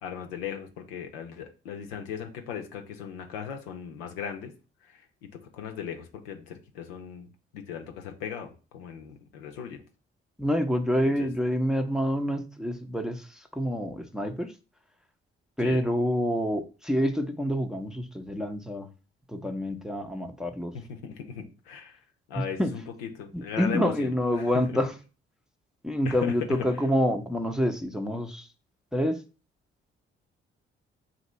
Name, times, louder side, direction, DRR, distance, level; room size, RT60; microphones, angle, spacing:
voice 1, 0.0-4.5 4.9-7.3 7.5-9.8 11.0-11.3 15.6-15.8 20.7-22.0 22.3-24.1 24.3-24.8 26.0-26.3, left 7 dB, 75° left, 4 dB, 0.7 m, -38 dB
voice 2, 10.4-13.3 13.5-14.5 15.6-18.9 19.3-20.7 22.6-22.7 23.3-24.9 25.8-28.5 28.9-29.2, equal, ahead, 5 dB, 0.7 m, -27 dB
2.9 x 2.5 x 4.2 m, 0.34 s
figure-of-eight pair, 40°, 31 cm